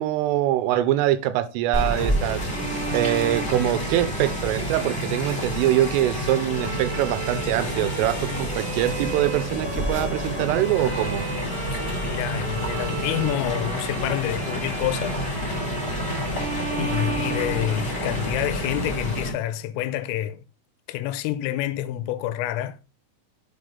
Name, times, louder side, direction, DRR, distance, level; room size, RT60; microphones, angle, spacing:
voice 1, 0.0-2.4 2.9-11.2, right 13 dB, 90° right, 3.2 m, -24 dB
Boil water, 1.7-19.3, equal, 30° left, 0.9 m, -29 dB
Bowed string instrument, 2.5-18.4, right 5 dB, 70° right, 2.3 m, -36 dB
voice 2, 12.0-15.2 16.8-20.4 20.9-22.8, left 13 dB, 85° left, 3.2 m, -28 dB
7.2 x 3.4 x 5.3 m
omnidirectional pair, 5.8 m